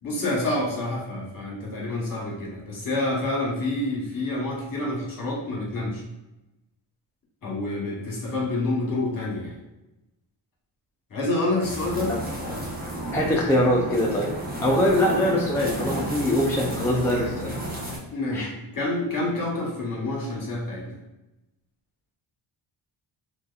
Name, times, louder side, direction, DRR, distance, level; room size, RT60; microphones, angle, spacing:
voice 1, 0.0-6.0 7.4-9.6 11.1-12.2 18.1-21.0, left 2 dB, 40° left, -3 dB, 1.3 m, -28 dB
sound 1, 11.6-18.0, equal, 20° right, 0.8 m, -32 dB
voice 2, 13.1-14.3 14.6-17.6 18.3-18.5, left 1 dB, 5° left, -3 dB, 0.4 m, -23 dB
2.7 x 2.4 x 2.4 m, 0.98 s
cardioid pair, 65°, 49 cm